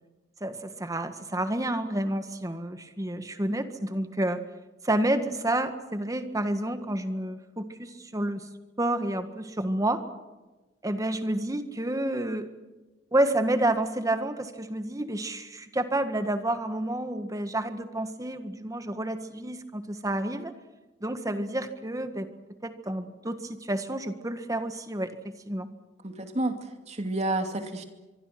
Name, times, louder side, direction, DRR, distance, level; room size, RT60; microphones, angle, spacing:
voice 1, 0.4-4.4 4.8-8.5 8.8-10.0 10.8-12.5 13.1-20.5 21.0-22.3 22.6-25.7, right 1 dB, 20° right, 8 dB, 1.7 m, -29 dB
voice 2, 26.0-27.8, right 2 dB, 35° right, 5 dB, 2.6 m, -30 dB
24.5 x 24.5 x 6.0 m, 1.1 s
head